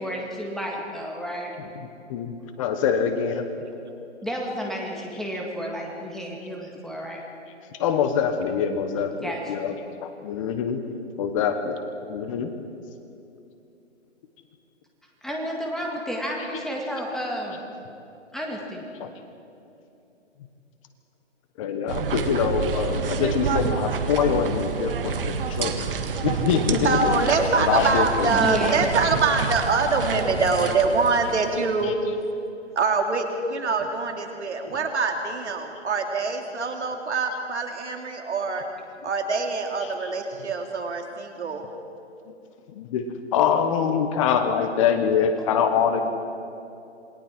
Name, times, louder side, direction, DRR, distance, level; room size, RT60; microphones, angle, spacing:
voice 1, 0.0-1.5 4.2-7.2 9.1-9.8 15.2-17.6 18.3-18.8 23.7-23.8 28.3-28.9, equal, ahead, -2 dB, 1.8 m, -31 dB
voice 2, 2.6-3.4 7.8-9.7 10.0-10.8 11.2-11.8 12.1-12.5 19.0-19.1 21.6-25.9 26.2-28.3 30.1-30.7 31.8-31.9 40.0-40.1 42.8-43.0 43.3-46.0, left 7 dB, 25° left, 7 dB, 1.3 m, -24 dB
sound 1, 21.9-31.8, right 5 dB, 50° right, 1.6 m, -28 dB
voice 3, 26.8-31.9 32.8-38.7 39.0-41.7, right 4 dB, 65° right, 3 dB, 3.0 m, -24 dB
27.5 x 21.0 x 4.5 m, 2.8 s
hypercardioid pair, 140°, 36 cm